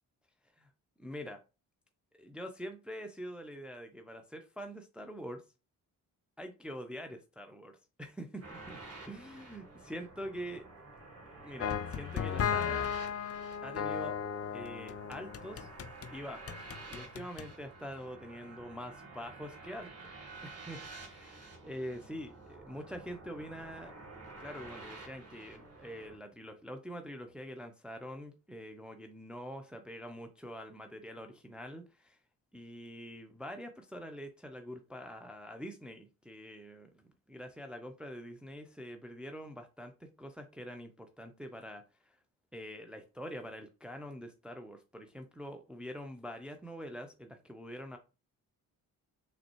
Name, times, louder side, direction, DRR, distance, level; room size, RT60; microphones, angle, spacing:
voice 1, 1.0-1.4 2.1-5.4 6.4-8.8 9.1-10.6 11.4-12.9 13.6-14.2 14.5-15.7 16.1-19.9 20.4-23.9 24.4-32.2 32.5-42.2 42.5-48.0, equal, ahead, 6 dB, 0.8 m, -45 dB
sound 1, 8.4-26.2, right 3 dB, 30° right, 1.6 m, -50 dB
sound 2, 11.6-16.1 16.5-17.5, left 8 dB, 35° left, 0.4 m, -35 dB
3.8 x 3.2 x 3.1 m, 0.30 s
hypercardioid pair, 45°, 46 cm